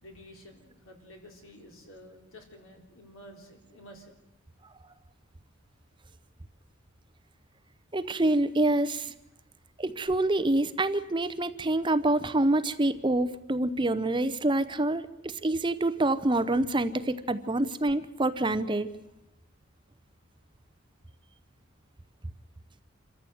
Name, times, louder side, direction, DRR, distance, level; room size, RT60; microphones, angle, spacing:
voice 1, 0.0-4.1, equal, 80° left, 2 dB, 3.9 m, -51 dB
voice 2, 7.9-9.1 9.8-18.9, right 2 dB, 25° right, 12 dB, 0.7 m, -26 dB
27.0 x 13.5 x 7.9 m, 0.96 s
head